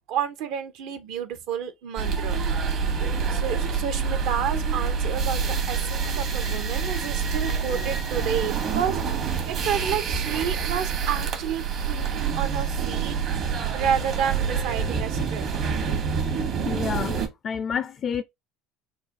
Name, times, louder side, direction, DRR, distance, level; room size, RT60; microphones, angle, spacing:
voice 1, 0.1-2.4 3.0-9.0 9.5-13.2 13.7-15.4 16.4-16.5, right 8 dB, 70° right, 0.8 m, -30 dB
sound 1, 2.0-17.3, right 6 dB, 50° right, 1.1 m, -27 dB
voice 2, 16.7-18.2, left 7 dB, 40° left, 0.4 m, -29 dB
4.0 x 2.3 x 3.6 m
supercardioid pair, 100°, 0 cm